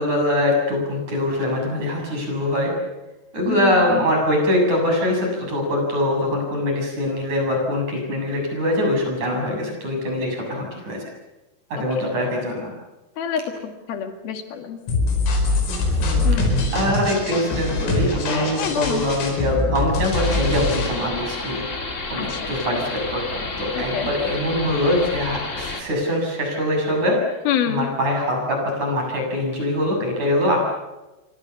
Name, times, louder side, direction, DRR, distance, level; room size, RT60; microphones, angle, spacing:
voice 1, 0.0-2.7 3.3-11.0 11.7-12.7 16.0-16.4 16.7-21.6 22.1-27.4 27.7-30.6, left 1 dB, 35° right, 1 dB, 8.6 m, -23 dB
voice 2, 3.5-4.0 12.0-12.1 13.2-14.8 16.2-16.5 18.6-19.1 22.2-22.7 23.9-24.1 27.5-27.9, left 8 dB, 55° left, 6 dB, 3.7 m, -27 dB
sound 1, 14.9-20.9, left 2 dB, 85° left, 7.5 m, -23 dB
sound 2, 20.1-25.8, left 3 dB, 35° left, 1.1 m, -31 dB
29.0 x 24.0 x 7.2 m, 1.0 s
omnidirectional pair, 5.8 m